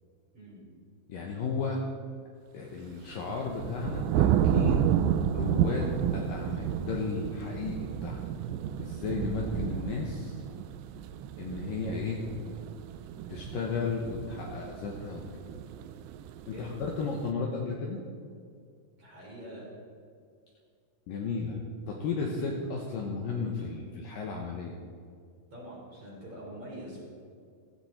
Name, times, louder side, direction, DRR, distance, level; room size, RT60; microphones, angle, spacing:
voice 1, 1.1-1.8 2.5-5.0 5.3-8.3 8.8-10.4 11.4-12.2 13.3-15.2 16.5-18.0 21.1-24.8, left 4 dB, 65° left, 0 dB, 2.4 m, -34 dB
sound 1, 3.0-17.3, right 10 dB, 85° right, 2.9 m, -31 dB
voice 2, 16.4-16.8 19.0-19.7 25.5-27.0, right 1 dB, 35° right, -4 dB, 5.1 m, -44 dB
16.0 x 16.0 x 4.4 m, 2.2 s
omnidirectional pair, 5.1 m